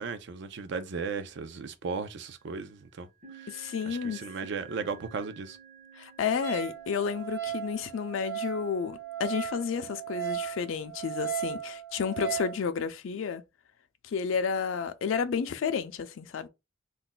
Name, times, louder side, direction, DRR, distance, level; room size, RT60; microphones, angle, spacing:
voice 1, 0.0-3.1 3.4-3.5 3.9-5.6, right 5 dB, 60° right, 0.4 m, -36 dB
sound 1, 1.9-2.4 3.2-10.3, right 7 dB, 40° right, 1.0 m, -53 dB
voice 2, 3.5-4.2 6.0-13.4 14.0-16.5, left 6 dB, 85° left, 0.4 m, -31 dB
Wind instrument woodwind instrument, 6.4-12.6, right 10 dB, 85° right, 1.0 m, -36 dB
2.5 x 2.1 x 3.8 m
head